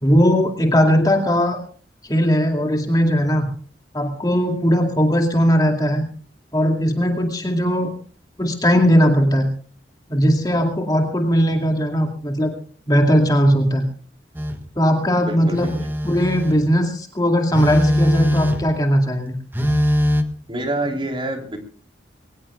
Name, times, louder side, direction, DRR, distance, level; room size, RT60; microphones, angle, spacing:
voice 1, 0.0-1.6 2.1-3.5 3.9-6.1 6.5-7.9 8.4-9.5 10.1-12.5 12.9-13.9 14.8-15.7 16.0-19.4, equal, 20° left, 3 dB, 2.3 m, -18 dB
Telephone, 14.3-14.6 15.5-16.6 17.5-18.8 19.5-20.2, equal, 10° right, 1.5 m, -20 dB
voice 2, 15.2-15.9 20.5-21.6, right 1 dB, 30° right, 3 dB, 3.8 m, -27 dB
23.0 x 19.5 x 2.4 m, 0.42 s
head